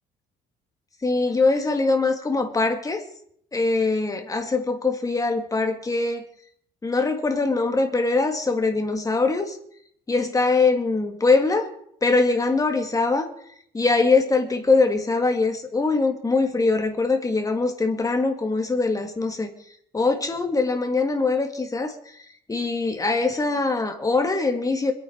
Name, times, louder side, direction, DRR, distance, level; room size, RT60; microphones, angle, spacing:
voice 1, 1.0-3.0 3.5-6.2 6.8-9.6 10.1-11.7 12.0-13.3 13.7-19.5 19.9-21.9 22.5-24.9, left 3 dB, 20° left, 5 dB, 2.5 m, -22 dB
26.0 x 8.9 x 4.8 m, 0.68 s
cardioid pair, 110°, 17 cm